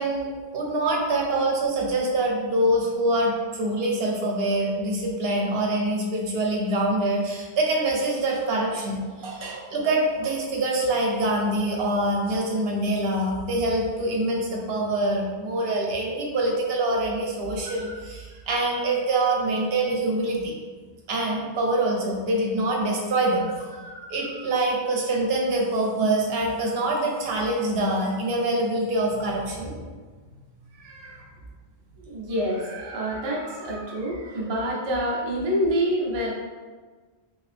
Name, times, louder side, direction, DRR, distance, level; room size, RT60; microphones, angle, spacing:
voice 1, 0.0-20.5 21.1-23.7 24.1-29.8, right 1 dB, 70° right, -1 dB, 0.8 m, -25 dB
voice 2, 23.8-24.3 30.7-31.3 32.0-36.3, equal, 35° right, -3 dB, 0.5 m, -28 dB
2.9 x 2.6 x 3.2 m, 1.4 s
omnidirectional pair, 1.1 m